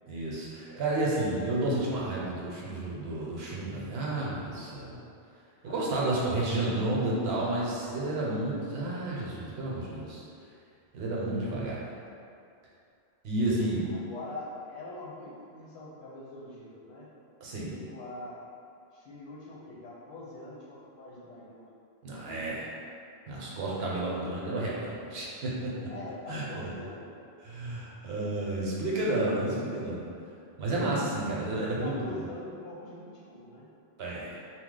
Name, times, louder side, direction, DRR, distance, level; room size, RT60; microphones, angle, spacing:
voice 1, 0.1-5.0 5.6-10.2 10.9-11.8 13.2-13.9 17.4-17.8 22.0-22.7 23.3-25.9 26.3-26.7 27.4-30.0 30.6-32.1 34.0-34.4, right 2 dB, 70° right, -5 dB, 0.9 m, -31 dB
voice 2, 5.7-6.9 13.9-17.1 17.7-18.4 18.9-21.7 25.8-27.0 31.6-33.7, left 2 dB, 90° left, -6 dB, 1.0 m, -44 dB
2.8 x 2.0 x 3.7 m, 2.5 s
omnidirectional pair, 1.1 m